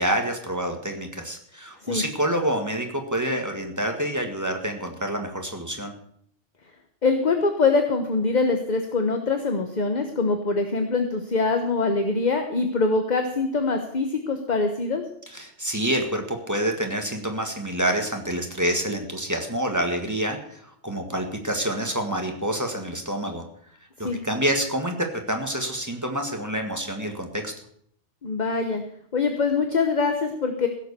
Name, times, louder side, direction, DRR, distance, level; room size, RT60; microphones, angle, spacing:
voice 1, 0.0-5.9 15.3-23.4 24.0-27.5, right 1 dB, 15° right, 3 dB, 1.7 m, -27 dB
voice 2, 7.0-15.0 24.0-24.2 28.2-28.8 29.1-30.7, left 4 dB, 40° left, 6 dB, 1.2 m, -23 dB
16.0 x 7.4 x 6.8 m, 0.67 s
omnidirectional pair, 1.3 m